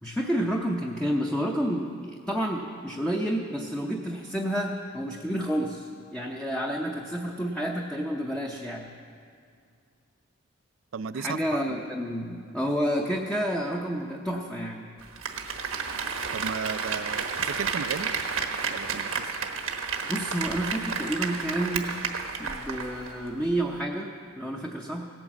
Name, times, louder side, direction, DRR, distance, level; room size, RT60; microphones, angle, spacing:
voice 1, 0.0-9.0 11.1-14.9 20.1-21.9 22.4-25.1, equal, 5° left, 0 dB, 0.6 m, -30 dB
voice 2, 10.9-11.4 11.7-11.8 16.3-18.1 18.7-19.4, right 6 dB, 70° right, 15 dB, 0.4 m, -35 dB
Applause, 15.0-23.2 23.5-23.6, right 5 dB, 90° right, 1.2 m, -31 dB
17.0 x 8.9 x 7.1 m, 2.3 s
head